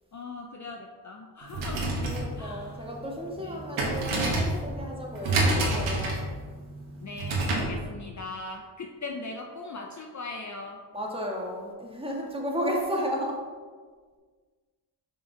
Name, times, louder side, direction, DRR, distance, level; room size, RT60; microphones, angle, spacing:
voice 1, 0.1-1.9 2.4-2.9 3.4-3.6 7.0-10.8, left 3 dB, 35° left, 2 dB, 0.7 m, -40 dB
sound 1, 1.4-7.8, right 2 dB, 75° right, 1.7 m, -29 dB
voice 2, 2.0-6.2 10.9-13.4, equal, 10° right, -1 dB, 1.7 m, -33 dB
5.5 x 5.2 x 3.9 m, 1.5 s
supercardioid pair, 50°, 49 cm